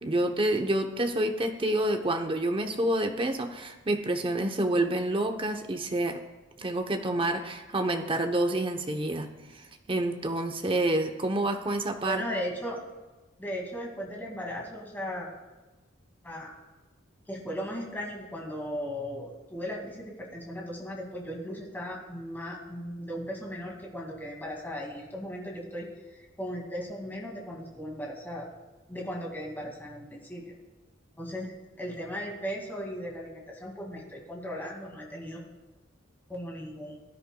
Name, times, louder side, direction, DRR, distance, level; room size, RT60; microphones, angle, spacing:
voice 1, 0.0-6.2 6.6-9.3 9.5-12.2, right 1 dB, 25° right, 5 dB, 0.8 m, -28 dB
voice 2, 12.0-12.8 13.4-15.3 16.2-16.6 17.3-28.5 28.9-30.4 31.2-31.5 31.8-35.4 36.3-37.0, equal, 10° left, -2 dB, 2.1 m, -37 dB
20.5 x 9.9 x 2.3 m, 1.2 s
head